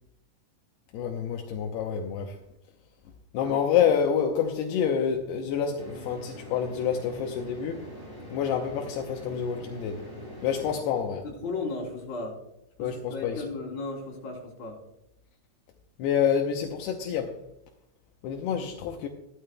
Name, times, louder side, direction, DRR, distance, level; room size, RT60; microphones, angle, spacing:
voice 1, 0.9-2.4 3.3-7.9 8.3-10.0 10.4-11.2 12.8-13.4 16.0-17.4 18.2-19.1, left 8 dB, 80° left, 2.8 m, -27 dB
sound 1, 5.8-10.8, equal, 10° right, 4.6 m, -43 dB
voice 2, 11.2-12.4 12.8-14.8, left 3 dB, 45° left, 4.2 m, -35 dB
16.5 x 12.5 x 2.2 m
omnidirectional pair, 4.7 m